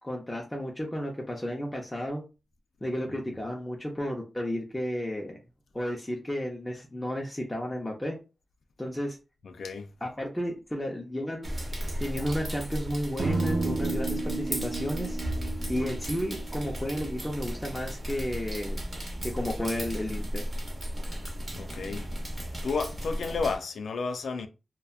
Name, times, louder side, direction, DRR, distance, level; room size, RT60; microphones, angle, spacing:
voice 1, 0.0-2.2 2.8-5.4 5.7-8.2 8.8-9.2 10.0-11.6 12.0-15.2 15.7-18.8 19.2-20.4, equal, 10° left, 0.5 m, -32 dB
voice 2, 9.4-9.9 21.5-22.1 22.6-24.5, left 4 dB, 90° left, 0.3 m, -32 dB
sound 1, 11.4-23.6, equal, 35° right, 0.8 m, -35 dB
sound 2, 13.2-17.3, right 3 dB, 60° right, 0.4 m, -33 dB
2.7 x 2.1 x 2.3 m
wide cardioid pair, 95°, 0 cm